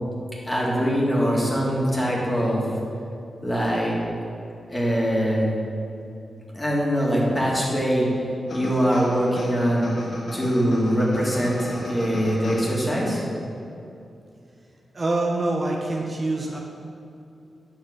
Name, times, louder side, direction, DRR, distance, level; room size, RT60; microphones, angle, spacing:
voice 1, 0.4-2.6 3.4-4.0 4.7-5.5 6.5-9.9 10.3-13.2, equal, 20° left, -4 dB, 2.2 m, -23 dB
sound 1, 8.5-13.3, left 1 dB, 60° left, 1.3 m, -36 dB
voice 2, 14.9-16.6, right 2 dB, 35° right, 0 dB, 0.9 m, -25 dB
8.8 x 6.2 x 5.4 m, 2.6 s
cardioid pair, 90°, 0 cm